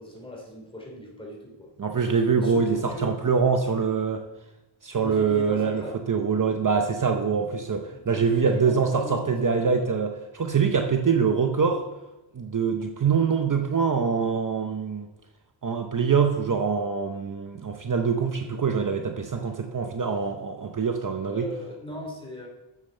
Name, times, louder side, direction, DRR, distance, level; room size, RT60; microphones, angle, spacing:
voice 1, 0.0-1.7 2.4-3.1 5.0-6.1 7.9-9.9 21.2-22.5, left 1 dB, 10° left, -1 dB, 2.8 m, -39 dB
voice 2, 1.8-4.2 4.8-11.8 12.3-15.1 15.6-21.5, right 5 dB, 45° right, 4 dB, 0.8 m, -24 dB
7.4 x 7.3 x 6.4 m, 1.0 s
wide cardioid pair, 105°, 44 cm